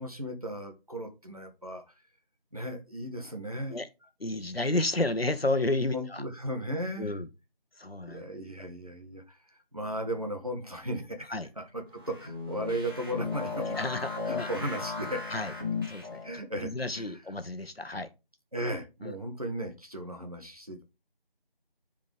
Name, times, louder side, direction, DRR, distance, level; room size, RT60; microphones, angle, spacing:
voice 1, 0.0-2.0 2.5-3.8 5.9-7.2 8.0-13.8 14.2-15.2 16.2-17.2 18.5-20.8, equal, 40° right, 1.6 m, -36 dB
voice 2, 4.2-6.2 7.0-7.3 7.8-8.2 11.3-11.5 13.8-14.5 15.3-15.5 15.9-16.2 16.6-18.1 19.0-19.1, left 2 dB, 80° left, 1.3 m, -31 dB
sound 1, 11.9-16.4, left 4 dB, 25° right, 1.9 m, -36 dB
9.2 x 5.1 x 3.6 m
figure-of-eight pair, 175°, 30 cm